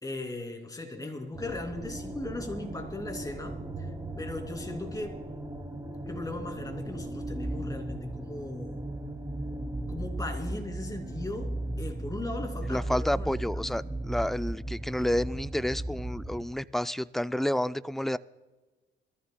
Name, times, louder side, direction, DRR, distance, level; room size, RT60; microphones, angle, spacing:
voice 1, 0.0-3.9 4.2-5.2 6.1-8.9 9.9-13.3 13.6-13.7, left 2 dB, 20° left, 2.7 m, -38 dB
sound 1, 1.3-16.5, right 1 dB, 15° right, 2.5 m, -36 dB
voice 2, 12.7-18.2, left 1 dB, ahead, 0.3 m, -30 dB
23.0 x 14.0 x 2.3 m
cardioid pair, 90°, 20 cm